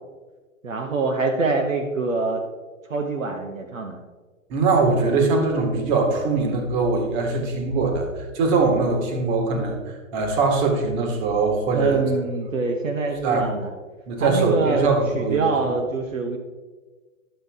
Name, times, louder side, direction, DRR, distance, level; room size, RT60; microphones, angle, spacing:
voice 1, 0.6-2.4 2.9-4.0 11.7-13.7 14.2-14.9 15.1-16.4, right 3 dB, 70° right, 3 dB, 1.2 m, -24 dB
voice 2, 4.5-9.8 10.1-12.0 13.2-13.5 14.1-15.5, right 3 dB, 35° right, 3 dB, 1.7 m, -22 dB
11.5 x 6.5 x 3.6 m, 1.3 s
figure-of-eight pair, 115°, 40 cm